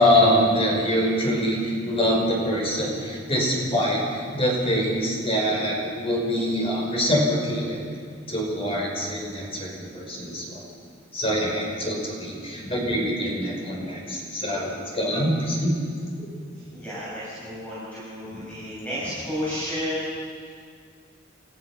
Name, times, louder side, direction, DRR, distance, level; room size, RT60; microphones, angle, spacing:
voice 1, 0.0-7.8 8.3-10.6 11.1-15.7 16.2-16.3, equal, 30° left, -1 dB, 5.4 m, -24 dB
voice 2, 16.7-20.1, equal, 5° left, -11 dB, 7.2 m, -32 dB
29.5 x 15.0 x 6.0 m, 2.1 s
head